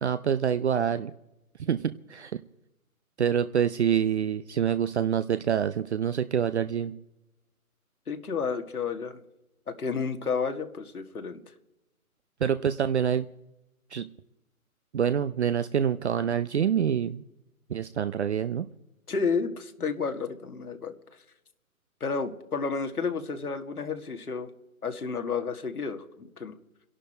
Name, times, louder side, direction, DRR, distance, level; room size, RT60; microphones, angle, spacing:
voice 1, 0.0-1.1 1.6-2.3 3.2-6.9 12.4-13.3 13.9-14.1 14.9-17.2 17.7-18.7, right 8 dB, 50° right, 13 dB, 0.7 m, -26 dB
voice 2, 8.1-9.2 9.7-11.4 19.1-20.9 22.0-24.5 24.8-26.6, left 5 dB, 85° left, 5 dB, 2.0 m, -31 dB
27.0 x 11.5 x 4.4 m, 0.94 s
hypercardioid pair, 150°, 43 cm